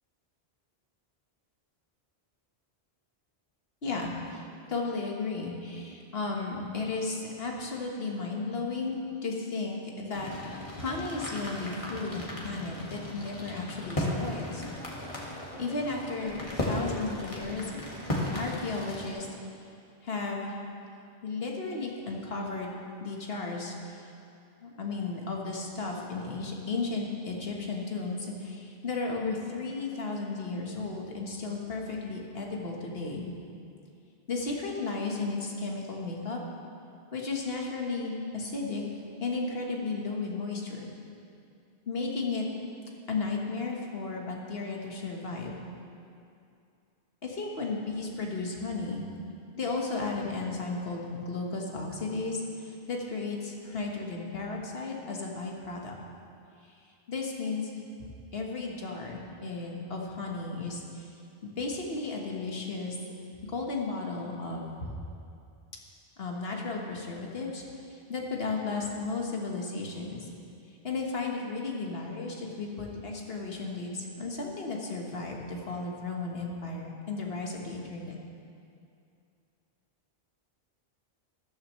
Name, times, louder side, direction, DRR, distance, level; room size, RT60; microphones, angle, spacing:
voice 1, 3.8-4.4 4.7-10.3 10.8-14.6 15.0-17.7 18.3-19.3 20.0-20.5 21.2-24.1 24.6-33.3 34.3-36.4 37.1-38.8 39.2-40.9 41.9-42.5 43.1-45.6 47.2-49.0 49.6-55.9 57.1-57.8 58.3-61.1 61.4-63.0 63.5-64.9 66.2-67.6 67.9-70.3 70.8-78.1, left 3 dB, 70° left, -1 dB, 1.6 m, -34 dB
sound 1, 10.1-19.1, left 1 dB, 30° left, 1.8 m, -36 dB
14.0 x 13.0 x 3.1 m, 2.5 s
omnidirectional pair, 1.0 m